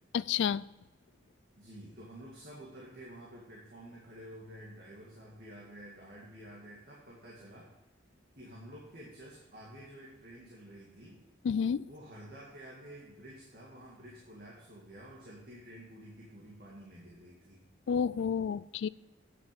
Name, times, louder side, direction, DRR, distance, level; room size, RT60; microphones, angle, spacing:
voice 1, 0.1-0.6 11.4-11.9 17.9-18.9, left 7 dB, 70° left, 19 dB, 0.3 m, -30 dB
voice 2, 1.6-7.7 8.3-11.2 11.9-17.6, right 1 dB, 50° right, -5 dB, 2.0 m, -50 dB
9.2 x 7.2 x 5.2 m, 1.0 s
head